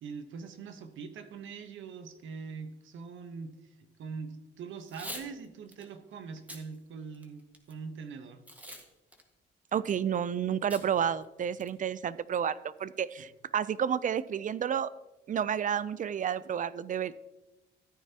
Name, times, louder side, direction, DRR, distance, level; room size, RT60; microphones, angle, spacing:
voice 1, 0.0-3.7 4.0-8.4 13.2-13.3, right 5 dB, 75° right, 8 dB, 1.1 m, -43 dB
Packing tape duct tape / Tearing, 4.8-5.3 5.7-5.9 6.4-6.6 7.1-7.7 8.5-8.9 9.1-9.2 10.7-10.9 11.2-11.3 11.6-11.9, equal, 10° right, 1.6 m, -43 dB
voice 2, 9.7-14.9 15.3-17.2, right 8 dB, 40° right, 17 dB, 0.5 m, -31 dB
14.0 x 9.2 x 2.9 m, 1.0 s
cardioid pair, 90°, 20 cm